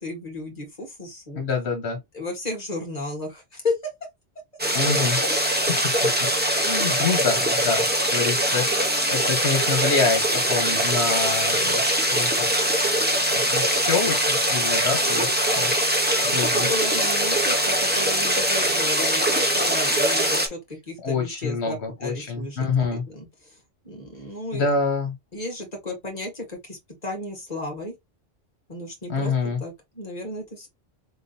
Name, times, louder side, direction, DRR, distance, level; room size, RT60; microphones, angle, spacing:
voice 1, 0.0-1.4 2.1-3.7 16.3-23.5 23.8-24.6 25.3-27.9 28.7-29.3 29.6-30.7, left 2 dB, 40° left, 1.9 m, -33 dB
voice 2, 1.4-2.0 4.7-5.2 6.5-7.8 8.1-8.7 9.1-12.5 13.3-15.7 16.3-16.7 21.0-23.0 24.5-25.1 29.1-29.6, left 4 dB, 75° left, 1.3 m, -26 dB
sound 1, 4.6-20.5, right 1 dB, 10° right, 0.7 m, -22 dB
3.9 x 3.8 x 2.6 m
omnidirectional pair, 1.1 m